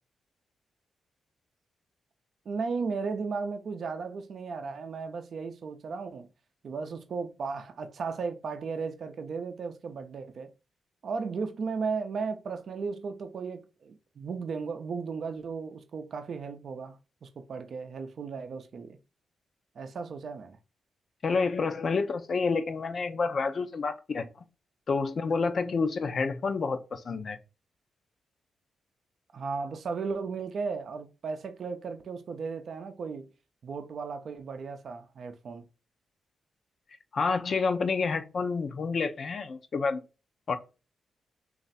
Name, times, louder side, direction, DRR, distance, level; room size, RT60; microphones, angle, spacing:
voice 1, 2.5-6.3 6.6-10.5 11.0-17.0 17.2-19.0 19.8-20.6 29.3-33.3 33.6-35.6, right 5 dB, 65° right, 0.5 m, -35 dB
voice 2, 21.2-24.3 24.9-27.4 37.1-40.0 40.5-40.6, left 4 dB, 55° left, 0.6 m, -29 dB
3.2 x 2.5 x 4.0 m
supercardioid pair, 60°, 0 cm